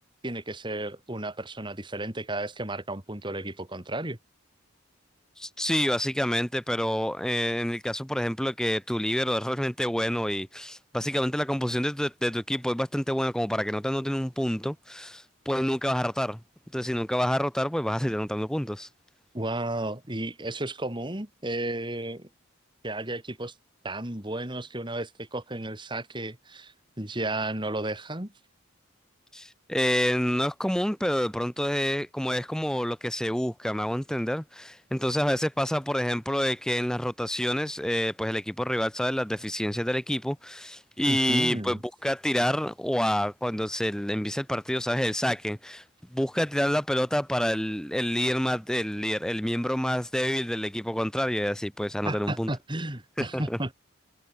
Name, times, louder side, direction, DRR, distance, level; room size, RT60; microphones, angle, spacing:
voice 1, 0.2-4.2 19.3-22.3 22.8-23.5 23.8-28.3 41.1-41.8 52.0-53.7, right 1 dB, 20° right, 2.3 m, -33 dB
voice 2, 5.4-16.4 16.7-18.9 29.3-45.8 46.1-52.5 53.2-53.6, equal, 5° left, 0.8 m, -28 dB
head